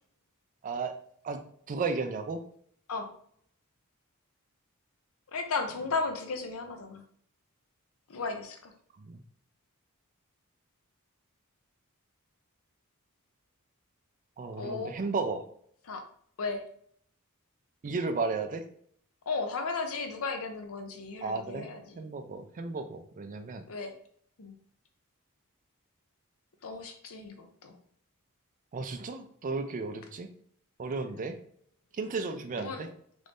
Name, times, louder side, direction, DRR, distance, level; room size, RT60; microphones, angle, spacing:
voice 1, 1.2-2.4 9.0-9.2 14.4-15.4 17.8-18.6 21.2-21.7 22.0-23.6 28.7-30.3 30.8-31.4 32.0-32.9, right 4 dB, 35° right, 7 dB, 0.4 m, -34 dB
voice 2, 5.3-7.0 8.1-8.7 14.6-15.0 15.8-16.0 16.4-16.6 19.3-22.0 23.7-23.9 24.4-24.6 26.6-27.8 32.6-32.9, left 4 dB, 65° left, 6 dB, 0.6 m, -35 dB
3.1 x 2.6 x 3.4 m, 0.63 s
head